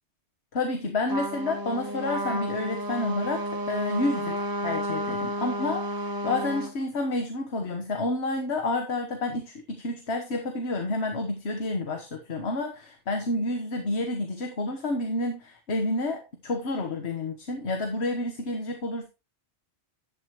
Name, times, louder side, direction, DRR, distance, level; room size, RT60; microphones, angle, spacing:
voice 1, 0.5-19.1, left 2 dB, 70° left, 4 dB, 1.5 m, -29 dB
Trumpet, 1.1-6.7, equal, 20° right, 1.1 m, -31 dB
11.0 x 8.7 x 3.0 m, 0.30 s
omnidirectional pair, 1.1 m